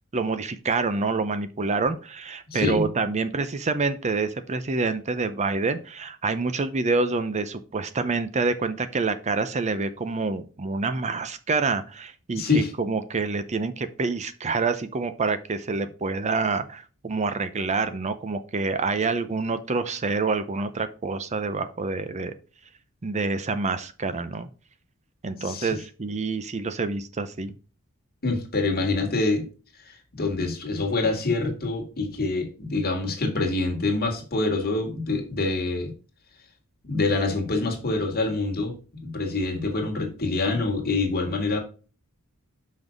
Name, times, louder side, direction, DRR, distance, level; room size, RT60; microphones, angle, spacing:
voice 1, 0.1-22.3 23.0-24.5 25.2-27.5, right 4 dB, 30° right, 0.6 m, -27 dB
voice 2, 2.5-2.9 12.3-12.7 25.4-25.8 28.2-29.5 29.8-35.9 36.8-41.6, left 3 dB, 45° left, 2.0 m, -26 dB
6.1 x 5.3 x 5.1 m
head